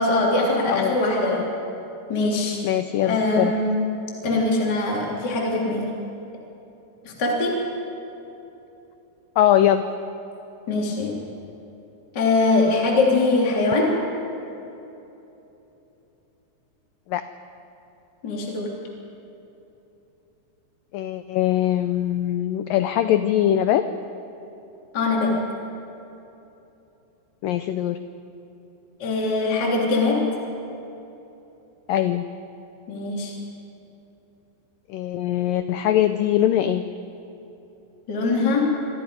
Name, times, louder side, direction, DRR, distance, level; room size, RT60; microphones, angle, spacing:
voice 1, 0.0-1.5 2.1-2.6 3.0-3.7 4.2-5.9 7.0-7.6 10.7-11.2 12.1-14.0 18.2-18.7 24.9-25.4 29.0-30.3 32.9-33.3 38.1-38.7, left 2 dB, 25° left, -2 dB, 3.2 m, -22 dB
voice 2, 2.6-3.5 9.4-9.8 17.1-17.2 20.9-23.9 27.4-28.0 31.9-32.2 34.9-36.9, left 11 dB, 90° left, 10 dB, 1.9 m, -21 dB
28.0 x 24.0 x 5.3 m, 3.0 s
omnidirectional pair, 4.8 m